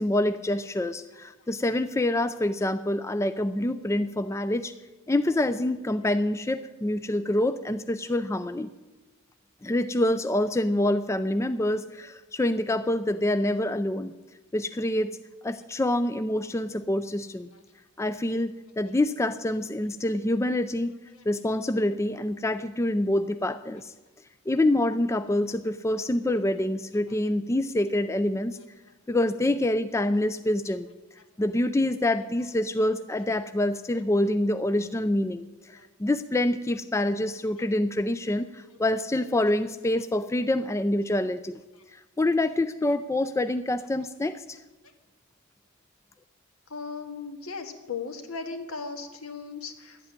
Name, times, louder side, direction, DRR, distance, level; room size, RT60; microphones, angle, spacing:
voice 1, 0.0-4.7 5.1-8.7 9.6-14.1 14.5-15.2 15.4-17.5 18.0-21.0 21.3-23.9 24.5-28.6 29.1-30.9 31.4-41.6 42.2-44.6, left 1 dB, 15° left, 11 dB, 0.3 m, -26 dB
voice 2, 46.7-50.0, left 4 dB, 80° left, 5 dB, 1.7 m, -37 dB
12.0 x 8.2 x 9.8 m, 1.2 s
head